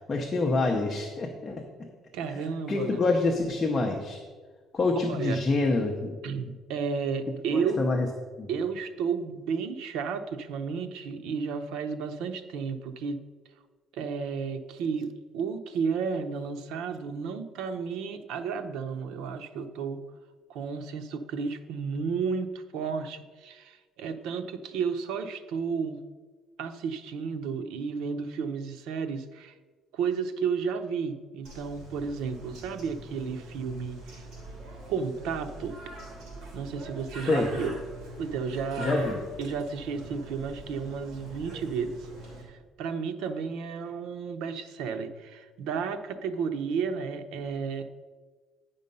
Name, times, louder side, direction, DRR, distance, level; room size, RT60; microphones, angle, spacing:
voice 1, 0.0-1.6 2.7-4.2 4.7-6.1 7.8-8.1 8.4-8.5 37.3-37.5 38.8-39.2, left 3 dB, 20° left, 1 dB, 0.7 m, -26 dB
voice 2, 2.1-3.0 5.1-5.4 6.2-7.8 8.5-13.2 13.9-20.0 20.5-26.0 26.6-29.5 29.9-34.3 34.9-35.8 36.5-37.8 38.2-39.1 39.4-42.1 42.4-47.8, right 5 dB, 85° right, 9 dB, 0.7 m, -32 dB
Bird, 31.4-42.4, right 1 dB, 65° right, 3.0 m, -43 dB
9.4 x 5.3 x 5.4 m, 1.4 s
cardioid pair, 175°, 0 cm